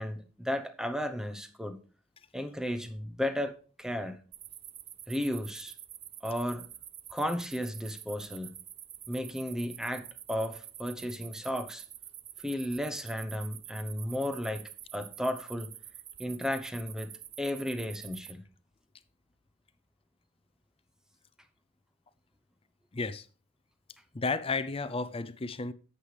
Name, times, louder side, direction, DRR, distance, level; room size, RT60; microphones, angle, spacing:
voice 1, 0.0-1.7 2.3-4.2 5.1-5.7 6.2-6.7 7.1-8.6 9.1-11.8 12.4-15.7 16.2-17.1 17.4-18.4, equal, 5° right, 0.9 m, -34 dB
sound 1, 4.3-18.3, right 10 dB, 30° right, 0.4 m, -47 dB
voice 2, 22.9-23.3 24.1-25.7, left 3 dB, 30° left, 0.5 m, -32 dB
11.0 x 8.2 x 3.4 m
head